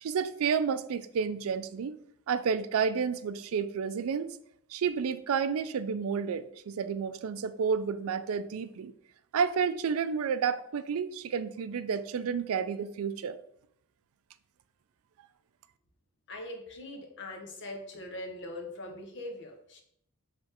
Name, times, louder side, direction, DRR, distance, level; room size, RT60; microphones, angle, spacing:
voice 1, 0.0-2.0 2.3-4.3 4.7-8.9 9.3-13.4, right 6 dB, 70° right, 0.4 m, -30 dB
voice 2, 16.3-19.8, left 1 dB, 55° left, 1.1 m, -41 dB
6.8 x 3.2 x 4.3 m
head